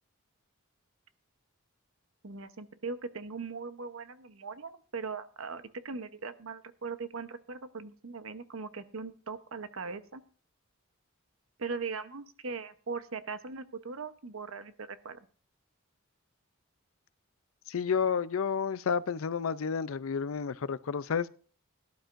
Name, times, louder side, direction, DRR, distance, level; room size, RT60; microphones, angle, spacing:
voice 1, 2.2-10.2 11.6-15.2, right 4 dB, 75° right, 0.9 m, -40 dB
voice 2, 17.7-21.4, left 6 dB, 75° left, 0.5 m, -31 dB
17.5 x 11.5 x 2.6 m
head